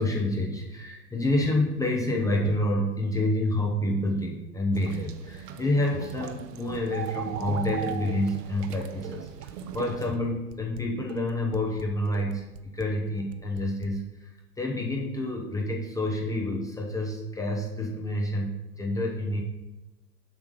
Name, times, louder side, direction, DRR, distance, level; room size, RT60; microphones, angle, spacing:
voice 1, 0.0-14.3 14.6-19.4, left 1 dB, 5° left, 0 dB, 0.6 m, -28 dB
sound 1, 4.7-10.1, right 10 dB, 70° right, 1.0 m, -37 dB
Dishes pots and pans, 6.7-7.8 8.1-13.9, right 11 dB, 50° right, 0.6 m, -45 dB
7.4 x 5.9 x 5.1 m, 0.99 s
hypercardioid pair, 135°, 50 cm